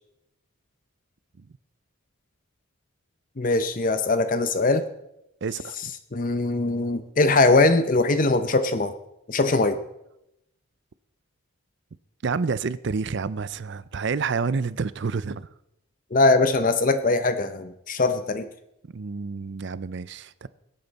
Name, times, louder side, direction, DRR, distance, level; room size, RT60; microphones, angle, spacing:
voice 1, 3.4-4.9 6.1-9.0 9.3-9.8 16.1-18.5, left 3 dB, 40° left, 10 dB, 0.7 m, -21 dB
voice 2, 5.4-5.9 12.2-15.5 18.9-20.5, right 5 dB, 55° right, 17 dB, 0.5 m, -29 dB
22.0 x 8.8 x 4.1 m, 0.85 s
head